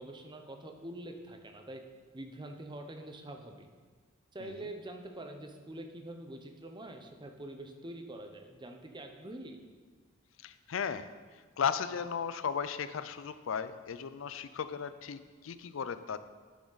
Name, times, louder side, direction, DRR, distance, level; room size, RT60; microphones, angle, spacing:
voice 1, 0.0-1.8 2.1-3.7 4.3-9.6, right 1 dB, 25° right, 4 dB, 0.7 m, -45 dB
voice 2, 4.4-4.7 10.4-11.1 11.6-16.2, left 7 dB, 70° left, 12 dB, 0.4 m, -36 dB
10.0 x 6.3 x 4.0 m, 1.5 s
head